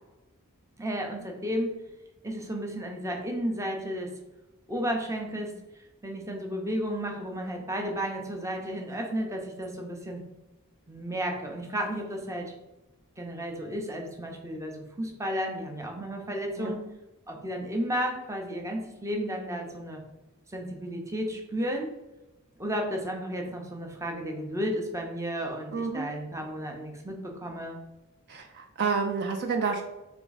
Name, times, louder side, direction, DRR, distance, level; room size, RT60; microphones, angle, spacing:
voice 1, 0.8-1.8 2.2-4.1 4.7-5.5 6.0-10.2 10.9-12.5 13.2-16.9 17.3-20.0 20.5-21.9 22.6-27.8, equal, 15° right, 2 dB, 0.6 m, -33 dB
voice 2, 25.7-26.1 28.3-29.8, right 5 dB, 50° right, 4 dB, 0.4 m, -29 dB
3.6 x 3.4 x 4.0 m, 1.0 s
head